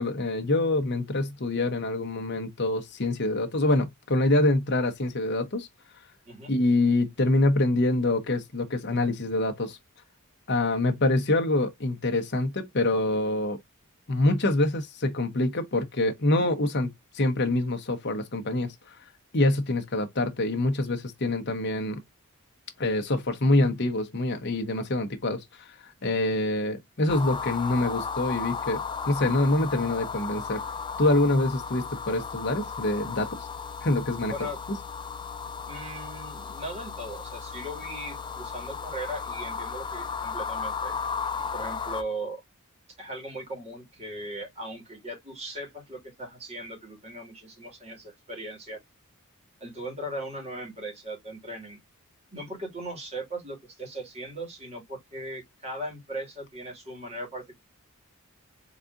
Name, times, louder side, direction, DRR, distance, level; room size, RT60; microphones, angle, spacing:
voice 1, 0.0-5.7 6.5-9.8 10.5-13.6 14.1-18.7 19.3-22.0 22.8-25.7 26.0-30.6 31.0-33.5 33.8-34.3, left 2 dB, 50° left, 0.9 m, -25 dB
sound 1, 27.1-42.0, left 6 dB, 20° left, 0.3 m, -35 dB
voice 2, 34.2-34.6 35.6-40.9 41.5-42.4 43.0-48.8 49.6-51.8 52.3-57.5, right 1 dB, 30° right, 2.3 m, -38 dB
4.1 x 3.6 x 2.5 m
head